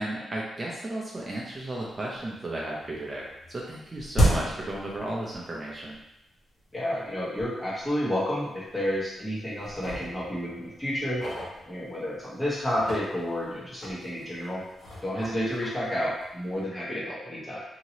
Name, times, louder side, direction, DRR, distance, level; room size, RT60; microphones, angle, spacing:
voice 1, 0.0-6.0, right 1 dB, 30° right, -4 dB, 0.6 m, -34 dB
sound 1, 1.4-1.5 1.8-2.4 2.7-5.6 5.9-6.0 6.8-6.9 7.4-7.5 7.8-8.0 8.7-9.2 9.6-12.2 12.6-16.5, equal, 60° left, 1.2 m, -33 dB
voice 2, 6.7-11.2 11.6-14.6 15.0-17.6, equal, 15° left, -6 dB, 1.2 m, -30 dB
2.9 x 2.8 x 2.9 m, 0.86 s
cardioid pair, 90°, 0 cm